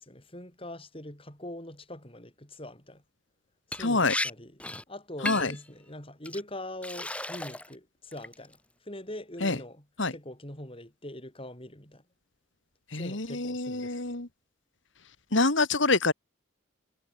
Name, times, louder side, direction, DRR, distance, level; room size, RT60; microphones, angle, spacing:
voice 1, 0.0-3.0 3.7-4.6 4.9-9.9 10.1-12.0 12.9-14.1, left 1 dB, 25° left, 6.0 m, -42 dB
Liquid, 3.7-3.8 4.1-4.3 4.6-4.8 5.3-5.6 6.2-6.4 6.8-7.7 8.1-8.5, left 1 dB, 5° left, 4.1 m, -34 dB
voice 2, 3.8-4.1 5.2-5.5 9.4-9.6 10.0-10.1 12.9-14.3 15.3-16.1, left 3 dB, 65° left, 2.2 m, -26 dB
head